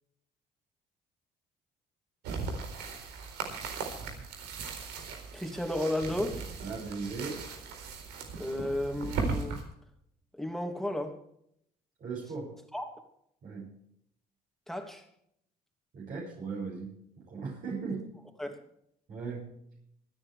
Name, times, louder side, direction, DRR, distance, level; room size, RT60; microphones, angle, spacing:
sound 1, 2.2-9.6, right 4 dB, 90° right, 4.1 m, -38 dB
voice 1, 5.3-6.4 8.4-9.6 10.3-11.2 12.7-13.0 14.7-15.0 18.4-18.6, left 1 dB, ahead, 4 dB, 2.8 m, -33 dB
voice 2, 6.6-7.4 12.0-12.5 13.4-13.7 15.9-18.1 19.1-19.6, right 4 dB, 55° right, -3 dB, 7.2 m, -38 dB
26.0 x 9.6 x 3.4 m, 0.72 s
cardioid pair, 110°, 17 cm